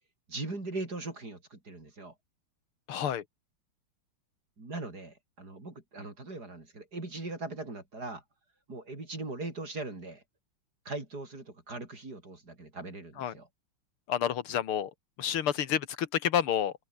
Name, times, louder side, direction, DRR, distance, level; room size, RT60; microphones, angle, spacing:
voice 1, 0.3-2.1 4.6-8.2 8.7-10.2 10.9-13.5, right 2 dB, 45° right, 5.8 m, -40 dB
voice 2, 2.9-3.2 13.2-13.3 14.1-14.9 15.2-16.7, left 9 dB, 85° left, 2.3 m, -29 dB
open air
omnidirectional pair, 2.3 m